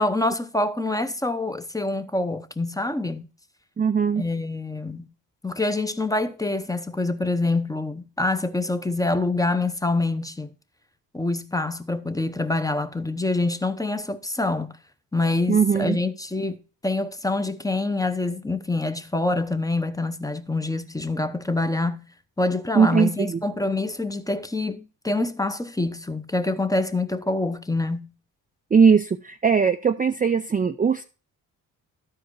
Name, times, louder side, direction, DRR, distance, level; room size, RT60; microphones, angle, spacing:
voice 1, 0.0-3.3 4.2-5.1 5.4-10.5 11.1-14.8 15.1-22.0 22.4-28.1, left 2 dB, 10° left, 0.8 m, -26 dB
voice 2, 3.8-4.2 15.5-16.0 22.8-23.4 28.7-31.0, right 6 dB, 20° right, 0.5 m, -20 dB
12.0 x 4.8 x 4.7 m
hypercardioid pair, 45°, 42 cm